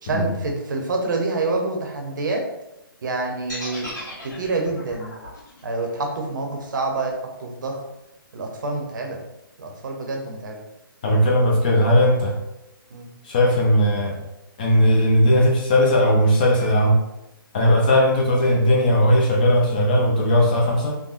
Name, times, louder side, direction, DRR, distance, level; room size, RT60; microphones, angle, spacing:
voice 1, 0.0-2.4 3.0-3.9 4.2-5.1 5.6-7.1 7.4-7.8 8.3-9.2 9.6-10.6 12.9-13.1, right 3 dB, 55° right, 2 dB, 0.7 m, -27 dB
sound 1, 3.5-7.5, left 1 dB, 50° left, 1.4 m, -38 dB
voice 2, 11.0-12.3 13.2-14.2 14.6-17.0 17.5-21.0, equal, 20° left, -1 dB, 0.3 m, -18 dB
3.5 x 2.1 x 2.5 m, 0.89 s
hypercardioid pair, 165°, 12 cm